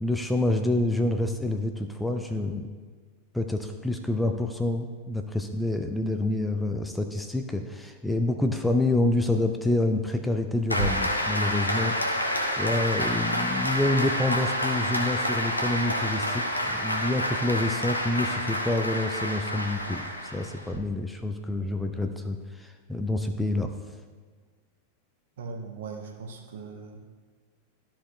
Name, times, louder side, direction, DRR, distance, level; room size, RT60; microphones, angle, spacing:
voice 1, 0.0-2.7 3.3-12.0 12.6-20.0 20.3-23.7, left 2 dB, 5° left, 6 dB, 0.5 m, -27 dB
Applause, 10.7-20.8, equal, 85° left, 0.8 m, -28 dB
voice 2, 25.4-27.0, right 4 dB, 60° right, 1 dB, 1.2 m, -39 dB
12.5 x 4.4 x 3.2 m, 1.5 s
figure-of-eight pair, 90°, 0 cm